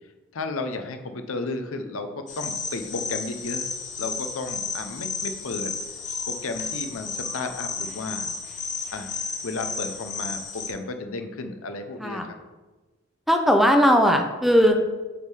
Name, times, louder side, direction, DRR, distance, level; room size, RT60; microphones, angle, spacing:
voice 1, 0.3-3.7 4.0-5.7 6.3-8.3 8.9-9.1 9.4-12.4, left 3 dB, 80° left, 7 dB, 0.6 m, -33 dB
sound 1, 2.3-10.7, left 4 dB, 35° left, 1.0 m, -33 dB
voice 2, 13.3-14.8, equal, ahead, 3 dB, 0.5 m, -18 dB
8.4 x 3.6 x 4.8 m, 1.2 s
head